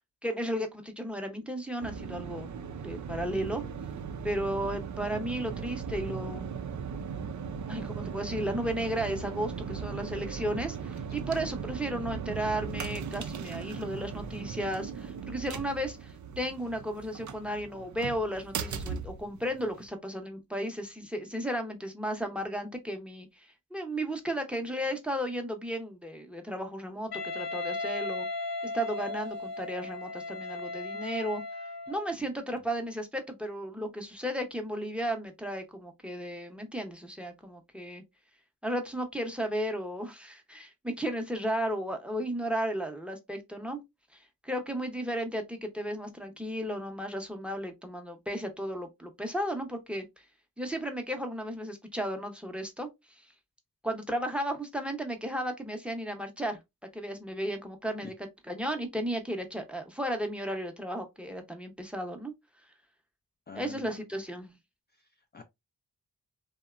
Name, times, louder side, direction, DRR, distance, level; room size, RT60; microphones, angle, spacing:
voice 1, 0.2-2.5 2.8-3.7 4.2-6.5 7.7-28.3 28.7-31.4 31.9-38.0 38.6-43.8 44.4-50.0 50.6-52.9 53.8-56.6 56.9-58.1 58.5-62.3 63.5-64.5, equal, 5° right, 0.7 m, -34 dB
sound 1, 1.8-19.9, right 6 dB, 50° right, 0.5 m, -38 dB
Wind instrument woodwind instrument, 27.1-32.1, left 2 dB, 75° left, 0.8 m, -36 dB
voice 2, 63.5-63.9 65.0-65.4, left 5 dB, 30° left, 0.4 m, -46 dB
2.8 x 2.2 x 2.4 m
cardioid pair, 50°, 37 cm